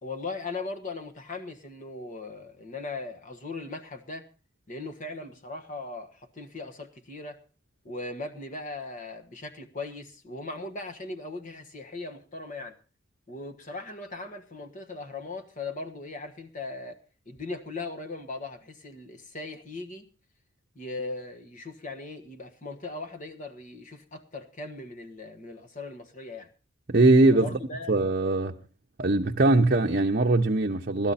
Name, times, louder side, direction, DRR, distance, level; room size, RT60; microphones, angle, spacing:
voice 1, 0.0-4.3 4.7-7.4 7.8-12.7 13.3-20.0 20.7-26.5 27.3-28.0, left 3 dB, 40° left, 1.4 m, -39 dB
voice 2, 26.9-27.5 27.9-28.5 29.0-31.1, right 2 dB, 45° right, 0.8 m, -21 dB
17.0 x 12.5 x 4.1 m
head